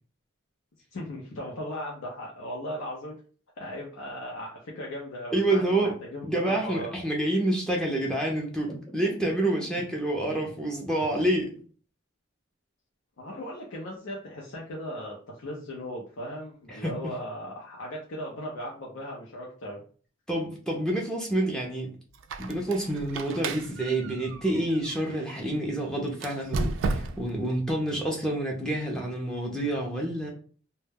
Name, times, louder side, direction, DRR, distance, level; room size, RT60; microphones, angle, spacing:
voice 1, 0.9-3.2 3.6-6.9 13.2-19.8, equal, 90° left, -3 dB, 0.6 m, -37 dB
voice 2, 5.3-5.9 6.2-11.5 16.7-16.9 20.3-21.9 22.4-30.3, right 1 dB, 5° left, -1 dB, 0.4 m, -28 dB
sound 1, 8.6-11.6, right 1 dB, 20° left, 0.8 m, -46 dB
Squeak, 22.1-25.3 26.1-27.4, right 3 dB, 70° right, 0.3 m, -34 dB
2.1 x 2.1 x 3.3 m, 0.42 s
head